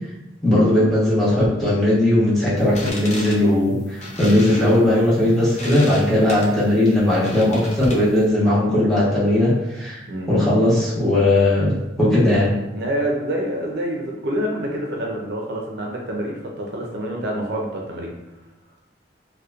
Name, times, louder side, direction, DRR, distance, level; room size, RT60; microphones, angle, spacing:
voice 1, 0.4-12.5, left 1 dB, ahead, -10 dB, 1.0 m, -18 dB
sound 1, 2.6-8.2, left 1 dB, 40° left, 0.5 m, -36 dB
voice 2, 12.7-18.1, right 1 dB, 65° right, -1 dB, 0.4 m, -27 dB
2.8 x 2.1 x 2.3 m, 0.99 s
head